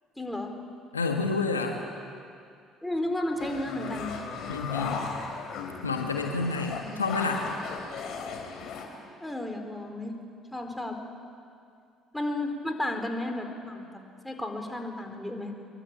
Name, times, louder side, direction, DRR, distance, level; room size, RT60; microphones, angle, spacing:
voice 1, 0.2-0.5 2.8-4.1 6.6-7.0 9.2-10.1 10.5-11.0 12.1-13.9 14.2-15.5, left 1 dB, 10° left, 4 dB, 4.3 m, -33 dB
voice 2, 0.9-1.8 4.5-5.0 5.8-7.5, left 4 dB, 85° left, 3 dB, 1.6 m, -29 dB
sound 1, 3.4-8.9, left 5 dB, 55° left, 4.0 m, -36 dB
23.5 x 22.5 x 8.8 m, 2.4 s
figure-of-eight pair, 50°, 0 cm